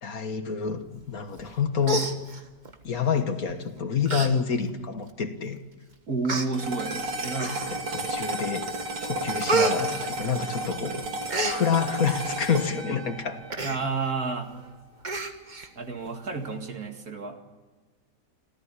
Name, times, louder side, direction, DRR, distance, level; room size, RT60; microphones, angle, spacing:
voice 1, 0.0-2.1 2.8-5.6 7.7-8.7 9.0-11.0 11.5-13.4, left 6 dB, 55° left, 8 dB, 1.8 m, -28 dB
Human voice, 1.4-1.6 1.8-2.7 3.5-3.7 4.1-4.3 4.7-4.8 5.6-5.7 6.2-6.5 7.4-7.9 8.4-8.8 9.0-10.7 11.0-11.6 13.5-13.8 14.2-14.3 14.5-14.7 15.0-15.7 16.1-16.2, right 2 dB, 25° right, 1.5 m, -29 dB
voice 2, 6.1-6.9 7.2-7.9 13.6-14.5 15.8-17.4, right 4 dB, 55° right, 5 dB, 2.5 m, -31 dB
sound 1, 6.5-15.0, right 2 dB, 85° right, 3.1 m, -33 dB
27.0 x 15.0 x 10.0 m, 1.3 s
omnidirectional pair, 1.9 m